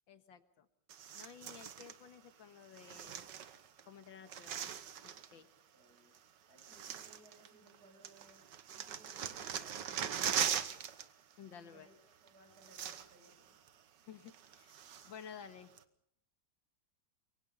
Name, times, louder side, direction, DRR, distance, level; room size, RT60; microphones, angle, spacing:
voice 1, 0.1-0.7 1.1-3.2 3.8-4.8 5.0-5.5 11.4-11.9 14.1-14.8 15.0-15.7, left 7 dB, 80° left, 10 dB, 2.2 m, -53 dB
sound 1, 0.9-2.0 2.7-3.8 4.1-5.3 6.1-6.2 6.6-7.8 8.0-11.1 11.3-11.5 12.3-12.4 12.6-13.3 13.7-13.8 14.3-15.2 15.8-15.9, right 9 dB, 70° right, 1.7 m, -40 dB
voice 2, 5.7-6.2 6.5-10.6 11.6-13.5, right 2 dB, 55° right, 4 dB, 7.4 m, -64 dB
28.5 x 23.5 x 5.4 m, 0.68 s
omnidirectional pair, 2.0 m